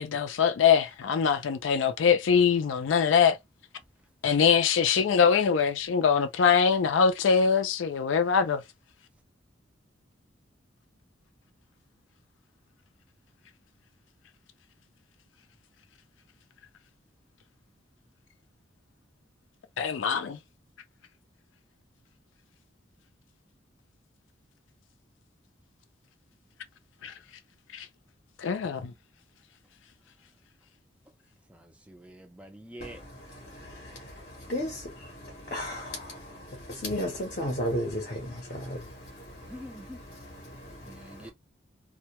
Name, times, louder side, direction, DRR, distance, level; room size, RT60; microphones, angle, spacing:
voice 1, 0.0-3.4 4.2-8.6 19.8-20.4 27.0-27.1 27.7-27.9 28.4-28.9, left 6 dB, 80° left, 0.4 m, -23 dB
voice 2, 31.9-33.0 39.5-40.0 40.8-41.3, equal, 5° right, 0.4 m, -45 dB
voice 3, 33.5-34.2 34.5-39.8 40.1-41.2, equal, 40° left, 0.7 m, -35 dB
2.2 x 2.1 x 2.8 m
head